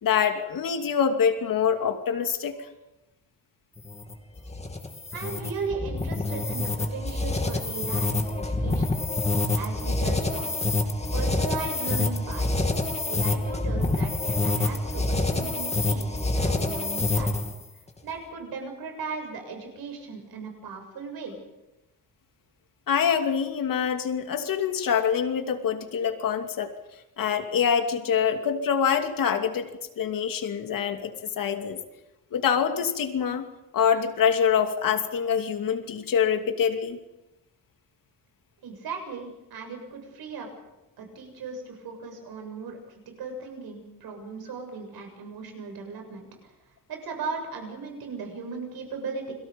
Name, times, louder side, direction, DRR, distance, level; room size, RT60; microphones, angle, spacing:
voice 1, 0.0-2.7 22.9-26.7 27.2-29.7 30.0-31.8 32.3-33.4 33.7-37.0, left 7 dB, 65° left, 5 dB, 2.7 m, -25 dB
sound 1, 3.8-17.6, left 2 dB, 20° left, 2.4 m, -27 dB
voice 2, 5.1-9.0 9.5-10.5 11.1-12.7 13.1-17.4 18.0-21.3 38.6-40.5 41.0-46.2 46.9-49.3, right 4 dB, 85° right, 3 dB, 7.4 m, -37 dB
29.5 x 22.5 x 5.4 m, 1.0 s
cardioid pair, 145°, 36 cm